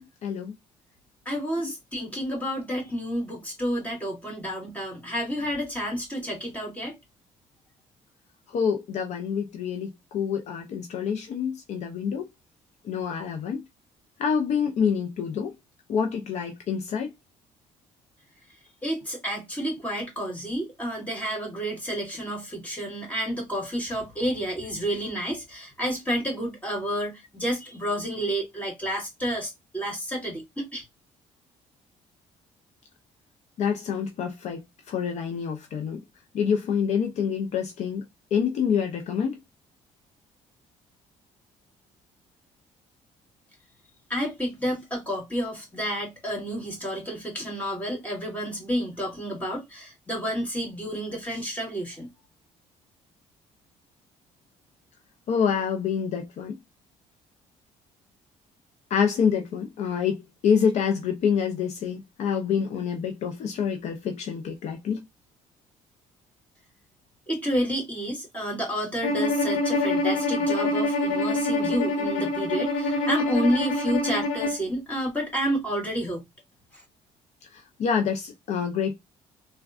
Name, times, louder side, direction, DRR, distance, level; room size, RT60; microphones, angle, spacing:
voice 1, 0.2-0.5 1.6-1.7 8.5-12.3 12.8-13.6 14.2-15.5 15.9-17.1 33.6-36.0 36.3-38.0 38.3-39.4 55.3-56.6 58.9-65.0 77.5-79.0, left 7 dB, 60° left, 0.5 m, -27 dB
voice 2, 1.3-7.0 18.8-30.8 44.1-52.1 67.3-76.2, equal, 10° left, 1.9 m, -30 dB
Bowed string instrument, 69.0-74.6, left 2 dB, 80° left, 0.9 m, -25 dB
3.4 x 2.2 x 2.4 m
cardioid pair, 110°, 13 cm